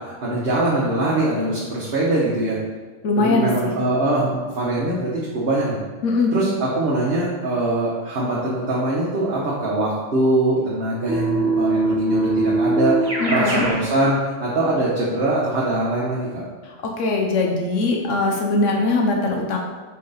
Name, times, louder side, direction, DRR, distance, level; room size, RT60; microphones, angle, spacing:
voice 1, 0.0-2.6 3.1-5.8 6.3-16.4, right 1 dB, 55° right, -6 dB, 1.3 m, -22 dB
voice 2, 3.0-3.7 6.0-6.3 13.2-13.6 17.0-19.6, left 3 dB, 80° left, 0 dB, 1.2 m, -21 dB
Keyboard (musical), 11.1-13.8, right 3 dB, 35° right, 1.8 m, -21 dB
6.0 x 4.8 x 4.3 m, 1.4 s
omnidirectional pair, 1.3 m